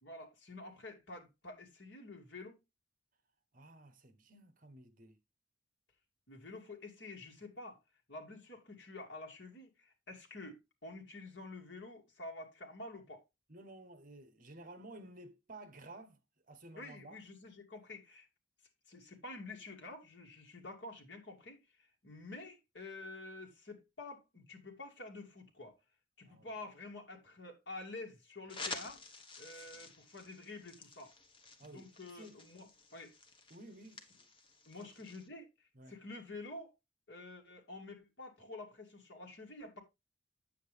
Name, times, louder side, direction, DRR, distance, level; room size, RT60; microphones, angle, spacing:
voice 1, 0.0-2.6 6.3-7.8 8.1-13.2 16.7-18.3 18.9-25.7 26.2-29.0 29.4-31.1 31.6-33.1 34.7-36.7 37.1-39.8, left 2 dB, 60° left, 2.6 m, -49 dB
voice 2, 3.5-5.2 13.5-16.2 16.5-17.2 26.2-26.5 29.7-29.8 31.6-32.4 33.5-34.3 34.7-35.1 35.7-36.0, right 2 dB, 45° right, 1.1 m, -54 dB
sound 1, 28.5-35.3, left 3 dB, 25° left, 1.3 m, -50 dB
9.0 x 7.6 x 3.4 m
head